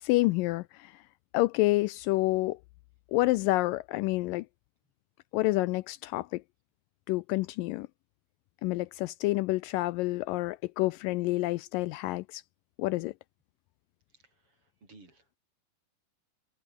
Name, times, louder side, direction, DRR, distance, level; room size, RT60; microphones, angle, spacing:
voice 1, 0.0-1.0 1.3-2.6 3.1-4.5 5.3-6.4 7.1-7.9 8.6-12.4 12.8-13.1, left 19 dB, 80° left, 2.1 m, -28 dB
voice 2, 14.1-15.4, right 3 dB, 40° right, 7.3 m, -58 dB
omnidirectional pair, 4.1 m